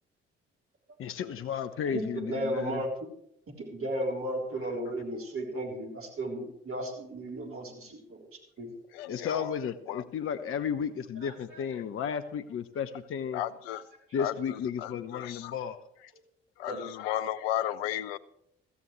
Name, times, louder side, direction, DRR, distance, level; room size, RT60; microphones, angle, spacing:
voice 1, 1.0-2.8 9.1-13.4 14.1-15.8, left 7 dB, 45° left, 10 dB, 0.8 m, -33 dB
voice 2, 1.9-2.9 3.7-8.3 8.6-8.7 16.7-16.8, right 1 dB, 45° right, 0 dB, 3.7 m, -34 dB
voice 3, 8.9-9.5 9.9-10.0 13.3-13.8 14.2-15.5 16.6-18.2, left 12 dB, 75° left, 16 dB, 0.6 m, -34 dB
16.5 x 14.0 x 3.2 m, 0.73 s
figure-of-eight pair, 45°, 30 cm